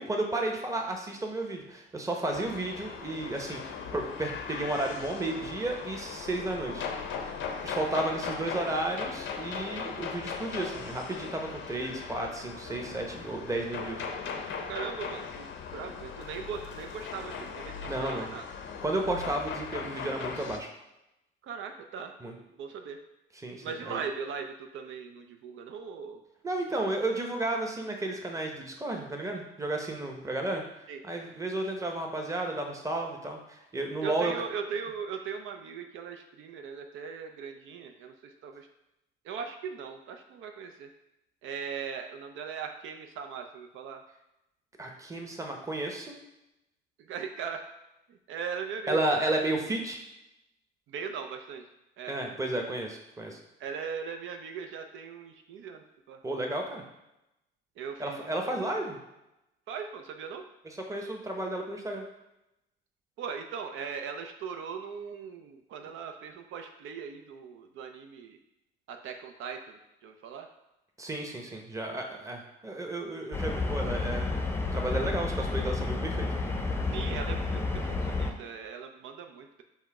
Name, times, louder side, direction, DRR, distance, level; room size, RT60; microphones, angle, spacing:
voice 1, 0.0-6.9 7.6-14.0 17.9-18.3 18.8-20.7 22.2-22.3 23.4-24.0 26.4-30.6 31.0-34.3 44.8-46.2 48.9-50.0 52.1-53.4 56.2-56.8 58.0-59.0 60.9-62.0 71.0-74.3 74.7-76.3, right 2 dB, 15° right, 2 dB, 0.8 m, -32 dB
sound 1, 2.3-20.6, left 6 dB, 70° left, 0.6 m, -38 dB
voice 2, 14.7-18.4 21.4-23.0 23.6-26.2 30.9-31.0 34.0-38.7 39.2-40.9 41.4-44.0 47.0-47.6 48.1-49.4 50.9-51.7 52.0-52.1 53.6-56.2 57.8-58.6 59.7-60.4 63.2-68.4 68.9-70.5 76.9-79.6, right 6 dB, 80° right, 5 dB, 0.5 m, -39 dB
sound 2, 73.3-78.3, left 3 dB, 10° left, 0.5 m, -30 dB
5.4 x 2.1 x 4.7 m, 0.90 s
cardioid pair, 90°, 20 cm